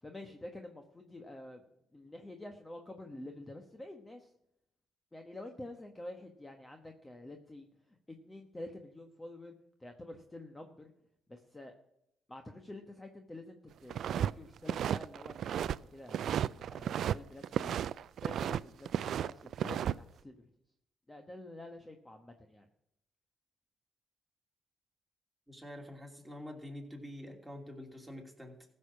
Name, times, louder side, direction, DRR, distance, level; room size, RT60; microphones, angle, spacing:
voice 1, 0.0-1.6 1.9-4.3 5.1-9.5 9.8-10.9 11.3-11.7 12.3-17.8 18.2-20.4 21.1-22.7, left 1 dB, 15° left, 4 dB, 1.2 m, -48 dB
sound 1, 13.9-14.3 14.6-15.8 16.1-17.2 17.4-18.6 18.9-19.9, right 9 dB, 65° right, 0.3 m, -33 dB
voice 2, 25.5-28.7, left 1 dB, 5° right, 1 dB, 2.8 m, -46 dB
15.0 x 6.6 x 6.1 m, 0.80 s
cardioid pair, 90°, 0 cm